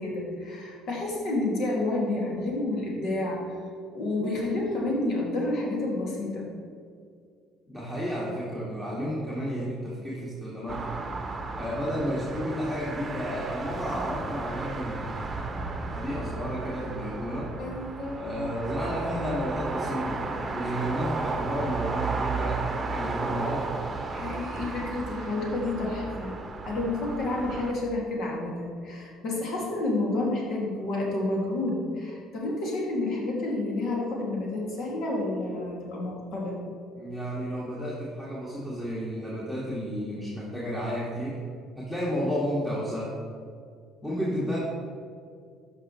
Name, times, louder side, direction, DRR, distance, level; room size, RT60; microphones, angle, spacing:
voice 1, 0.0-3.6 3.9-6.5 17.6-18.5 24.1-26.4 26.6-36.6, left 2 dB, 55° left, -2 dB, 2.1 m, -30 dB
voice 2, 7.7-11.0 11.5-15.3 15.9-17.6 18.2-20.3 20.5-23.8 37.0-41.4 41.8-43.1 44.0-44.6, equal, 10° left, -7 dB, 1.9 m, -32 dB
sound 1, 10.7-27.7, right 3 dB, 30° right, 0.9 m, -34 dB
12.0 x 5.3 x 3.1 m, 2.2 s
hypercardioid pair, 55°, 0 cm